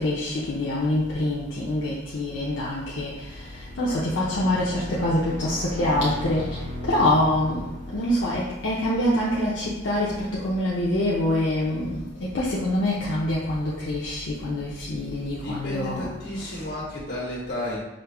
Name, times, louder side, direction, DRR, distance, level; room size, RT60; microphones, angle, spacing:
voice 1, 0.0-3.4 3.8-6.6 6.8-7.6 7.9-16.1 16.3-16.5, left 1 dB, 90° left, -6 dB, 0.6 m, -25 dB
sound 1, 2.3-9.9, left 1 dB, 45° right, 0.5 m, -38 dB
voice 2, 15.2-17.8, left 1 dB, 65° left, -6 dB, 1.4 m, -33 dB
5.1 x 2.0 x 3.4 m, 0.99 s
head